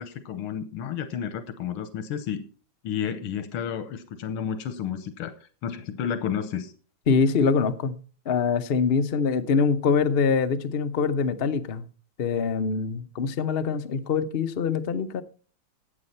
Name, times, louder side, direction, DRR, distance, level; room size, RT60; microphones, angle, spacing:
voice 1, 0.0-2.4 2.8-5.3 5.6-6.7, left 8 dB, 90° left, 1.8 m, -31 dB
voice 2, 7.1-8.0 8.3-11.9 12.2-15.2, left 5 dB, 70° left, 0.5 m, -24 dB
15.0 x 8.2 x 4.3 m
omnidirectional pair, 2.3 m